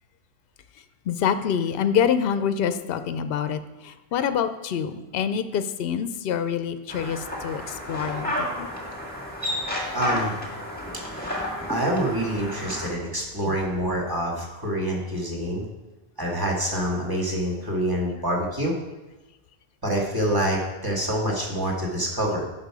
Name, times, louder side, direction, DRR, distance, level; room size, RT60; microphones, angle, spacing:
voice 1, 1.1-8.7, left 8 dB, 70° left, 11 dB, 0.8 m, -26 dB
sound 1, 6.9-12.9, left 1 dB, 10° left, 1.9 m, -31 dB
voice 2, 9.9-10.3 11.1-11.4 11.7-15.6 16.2-18.7 19.8-22.4, right 1 dB, 20° right, -3 dB, 1.9 m, -26 dB
10.5 x 5.9 x 4.8 m, 1.1 s
omnidirectional pair, 1.1 m